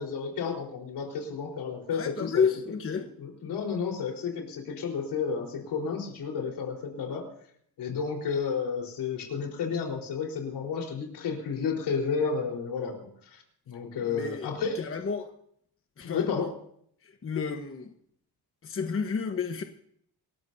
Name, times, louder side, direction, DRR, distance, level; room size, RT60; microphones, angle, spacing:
voice 1, 0.0-2.5 3.0-7.3 7.8-14.8 16.0-16.5, left 5 dB, 75° left, 1 dB, 4.3 m, -32 dB
voice 2, 1.9-3.1 14.1-14.5 14.7-15.3 16.0-16.2 17.0-17.9 18.6-19.6, left 5 dB, 30° left, 5 dB, 1.2 m, -30 dB
27.0 x 14.0 x 2.7 m, 0.66 s
cardioid pair, 115°, 40 cm